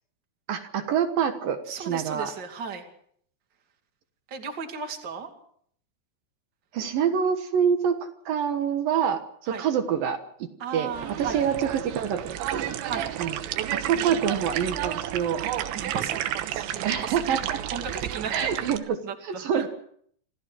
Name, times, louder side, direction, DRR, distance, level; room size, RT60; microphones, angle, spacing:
voice 1, 0.5-2.3 6.7-8.0 8.3-10.2 10.7-12.7 13.2-13.4 13.7-15.4 16.8-17.6 18.3-19.7, right 8 dB, 65° right, 7 dB, 2.7 m, -26 dB
voice 2, 1.7-2.8 4.3-5.3 9.5-9.6 10.6-11.4 12.8-13.1 15.7-17.4 17.7-18.7 19.0-19.1 19.5-19.7, right 6 dB, 30° right, 4 dB, 2.4 m, -35 dB
sound 1, 10.9-18.8, right 12 dB, 85° right, 3.4 m, -31 dB
27.5 x 15.5 x 6.3 m, 0.64 s
omnidirectional pair, 5.1 m